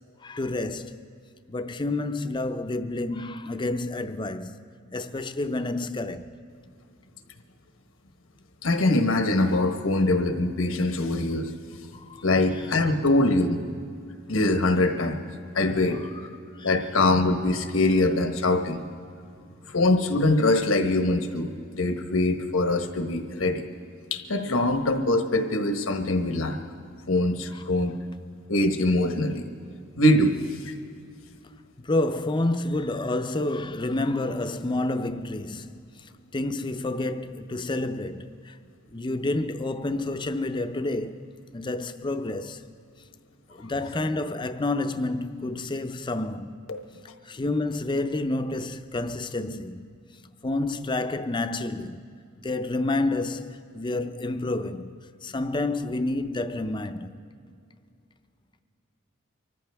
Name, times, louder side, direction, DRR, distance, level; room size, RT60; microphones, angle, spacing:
voice 1, 0.2-1.0 1.5-4.6 4.9-6.3 11.9-12.3 12.5-12.6 16.6-16.7 27.5-27.6 31.8-38.6 38.9-42.6 43.5-46.6 47.3-49.9 50.4-52.0 52.4-55.0 55.2-57.2, left 2 dB, 25° left, 0.6 m, -29 dB
voice 2, 8.6-11.5 12.2-13.6 14.3-15.2 15.5-16.0 16.6-18.8 19.7-23.6 24.1-26.6 27.1-28.0 28.5-29.4 30.0-30.4 46.7-46.8, left 2 dB, 85° left, 1.2 m, -23 dB
24.5 x 14.5 x 3.5 m
head